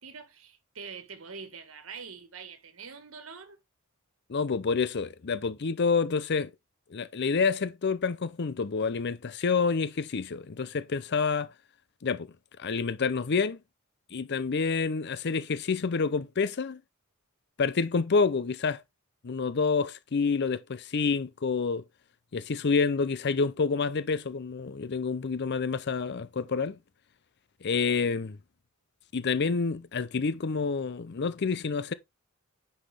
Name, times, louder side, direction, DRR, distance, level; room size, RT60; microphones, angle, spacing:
voice 1, 0.0-3.6, right 5 dB, 70° right, 1.6 m, -44 dB
voice 2, 4.3-6.5 6.9-11.5 12.0-12.3 12.6-13.6 14.1-16.8 17.6-18.8 19.2-21.8 22.3-26.8 27.6-28.4 29.1-31.9, left 5 dB, 55° left, 0.6 m, -28 dB
10.0 x 5.6 x 3.3 m
head